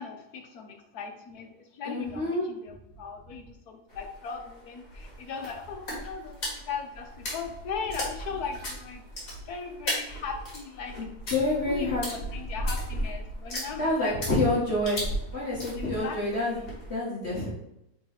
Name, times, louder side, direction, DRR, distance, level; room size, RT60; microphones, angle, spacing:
voice 1, 0.0-9.0 9.5-11.0 11.7-13.9 15.8-16.2 16.4-16.7, left 5 dB, 75° left, 4 dB, 1.4 m, -38 dB
voice 2, 1.8-2.5 11.0-11.1 11.3-12.0 13.8-15.1 15.3-16.6 16.9-17.5, left 2 dB, 45° left, -8 dB, 2.0 m, -27 dB
sound 1, 3.9-16.9, equal, 60° left, 2.5 m, -37 dB
7.1 x 3.2 x 4.3 m, 0.83 s
omnidirectional pair, 1.7 m